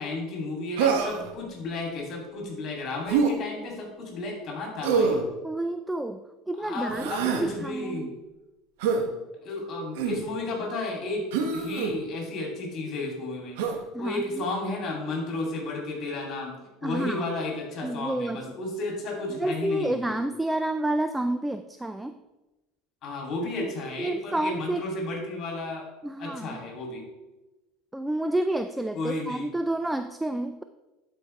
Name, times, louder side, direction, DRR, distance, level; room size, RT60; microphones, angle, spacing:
voice 1, 0.0-5.2 6.6-8.1 9.4-11.2 11.5-13.6 14.0-16.5 16.8-20.3 23.0-25.8 26.2-27.0 28.9-29.5, left 2 dB, 45° left, 0 dB, 2.8 m, -33 dB
Human voice, 0.8-1.3 3.1-3.3 4.8-5.3 6.9-7.5 8.8-9.0 9.9-10.2 11.3-11.9 13.6-13.8, right 5 dB, 80° right, 1.0 m, -25 dB
voice 2, 5.4-8.1 13.9-14.4 16.8-17.3 17.8-18.4 19.4-22.2 23.4-23.7 24.0-24.9 26.0-26.6 27.9-30.6, right 1 dB, 5° right, 9 dB, 0.3 m, -29 dB
11.5 x 4.9 x 3.3 m, 1.0 s
supercardioid pair, 105°, 0 cm